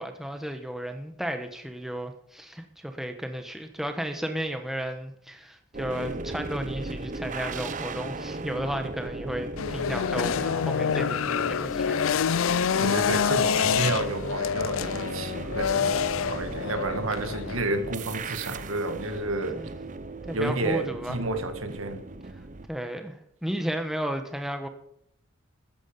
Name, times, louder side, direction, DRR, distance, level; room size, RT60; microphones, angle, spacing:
voice 1, 0.0-12.0 19.1-19.7 20.3-21.2 22.7-23.2 23.4-24.7, equal, ahead, 1.0 m, -33 dB
sound 1, 5.7-22.7, right 3 dB, 35° right, 0.7 m, -37 dB
sound 2, 9.6-17.6, left 7 dB, 80° left, 0.4 m, -27 dB
voice 2, 12.8-19.6 20.3-22.0, right 2 dB, 80° right, 1.7 m, -30 dB
13.5 x 10.0 x 5.3 m
head